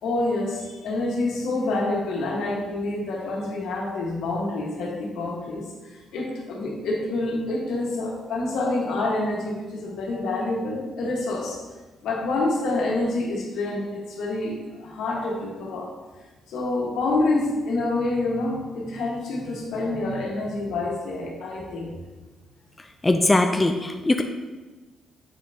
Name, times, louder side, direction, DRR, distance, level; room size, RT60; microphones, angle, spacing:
voice 1, 0.0-5.6 5.9-11.6 12.0-15.9 16.5-21.9, left 2 dB, 80° left, -2 dB, 1.5 m, -27 dB
voice 2, 23.0-24.2, left 2 dB, 20° left, 5 dB, 0.5 m, -20 dB
7.7 x 5.5 x 2.8 m, 1.3 s
cardioid pair, 90°, 0 cm